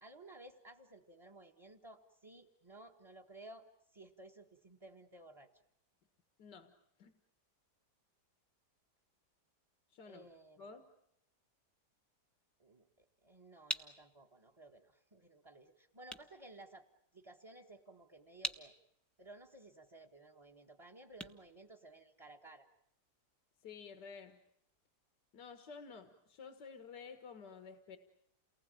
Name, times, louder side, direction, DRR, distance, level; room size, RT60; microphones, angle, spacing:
voice 1, 0.0-5.5 10.0-10.7 12.6-16.9 17.1-18.7 19.2-22.7, right 2 dB, 15° right, 5 dB, 1.4 m, -56 dB
voice 2, 6.4-6.7 7.0-7.1 9.9-10.3 10.6-10.9 23.6-24.4 25.3-28.0, left 5 dB, 80° left, 7 dB, 2.1 m, -52 dB
sound 1, 13.3-22.4, equal, ahead, 0.9 m, -48 dB
29.5 x 19.5 x 9.1 m, 0.78 s
omnidirectional pair, 1.8 m